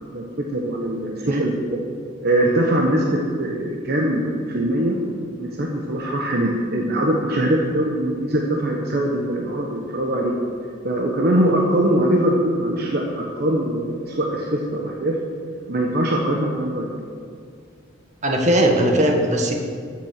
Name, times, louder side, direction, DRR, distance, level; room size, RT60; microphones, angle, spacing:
voice 1, 0.5-1.8 2.2-5.0 5.4-10.3 10.8-15.1 15.7-16.9, right 1 dB, 55° right, 0 dB, 1.2 m, -22 dB
voice 2, 18.2-19.6, right 1 dB, 40° right, 2 dB, 1.6 m, -19 dB
13.0 x 7.4 x 6.6 m, 2.1 s
head